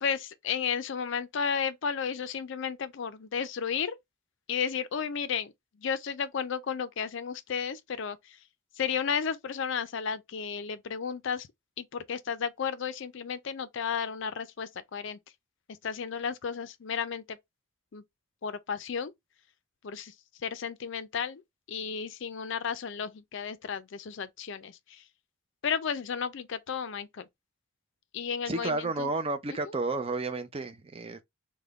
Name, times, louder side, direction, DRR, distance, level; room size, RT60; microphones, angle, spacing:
voice 1, 0.0-4.0 4.5-5.5 5.8-8.4 8.8-11.5 11.8-15.2 15.8-17.4 17.9-18.0 18.4-19.1 19.8-20.1 20.4-21.4 21.7-25.0 25.6-27.3 28.1-29.1 29.5-29.7, left 6 dB, 55° left, 0.4 m, -33 dB
voice 2, 28.5-31.2, right 3 dB, 25° right, 0.4 m, -31 dB
3.5 x 2.2 x 3.4 m
head